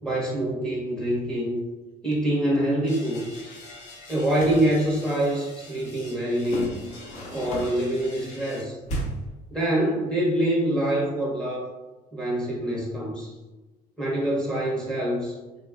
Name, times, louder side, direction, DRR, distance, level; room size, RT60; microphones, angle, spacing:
voice 1, 0.0-1.6 2.0-3.3 4.1-6.7 7.3-8.8 9.5-11.7 12.1-13.3 14.0-15.3, right 1 dB, 5° left, -5 dB, 0.8 m, -25 dB
sound 1, 2.9-8.6, left 2 dB, 85° left, 0.9 m, -46 dB
sound 2, 4.4-4.7 6.4-7.9 8.8-9.4, equal, 45° left, 0.7 m, -33 dB
3.0 x 2.3 x 2.3 m, 1.1 s
cardioid pair, 125°, 17 cm